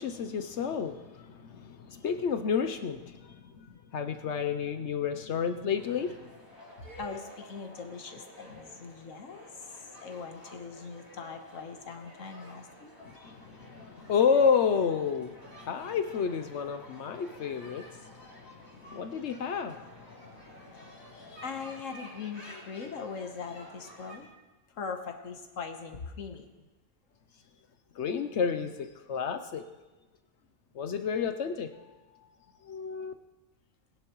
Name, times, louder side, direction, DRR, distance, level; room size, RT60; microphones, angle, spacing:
voice 1, 0.0-6.2 13.0-20.7 21.1-21.4 27.9-29.7 30.7-32.0 32.6-33.1, left 6 dB, 70° left, 9 dB, 0.9 m, -31 dB
sound 1, 5.7-24.2, equal, 45° left, 3.8 m, -51 dB
voice 2, 6.8-12.9 21.4-24.3 24.7-26.7, left 5 dB, 90° left, 5 dB, 1.5 m, -41 dB
20.5 x 10.5 x 3.0 m, 1.1 s
omnidirectional pair, 1.3 m